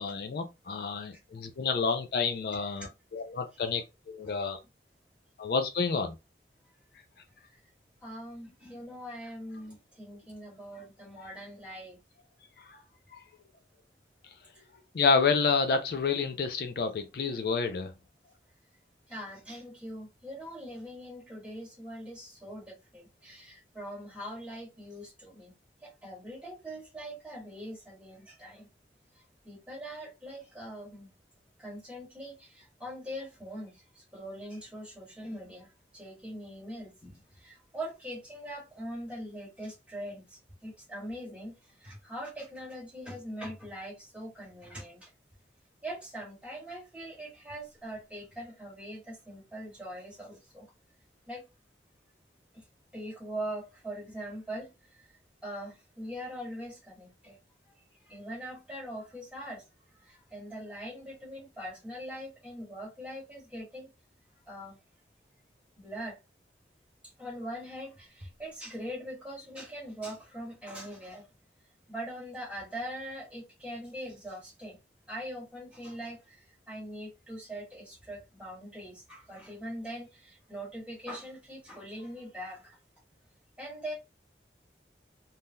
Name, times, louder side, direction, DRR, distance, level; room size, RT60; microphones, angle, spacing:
voice 1, 0.0-4.6 5.4-6.2 11.2-11.3 12.6-12.8 13.1-13.2 14.9-17.9, left 5 dB, 55° left, 0.4 m, -29 dB
voice 2, 8.0-12.0 14.5-14.6 19.1-25.5 25.8-28.7 29.4-31.1 31.6-41.5 41.8-45.1 45.8-50.6 51.3-51.4 52.9-57.4 58.1-59.6 60.0-63.9 64.5-64.8 65.8-66.2 67.2-71.2 71.9-74.8 75.1-82.8 83.6-83.9, equal, 5° right, 1.4 m, -42 dB
3.5 x 2.7 x 2.2 m
head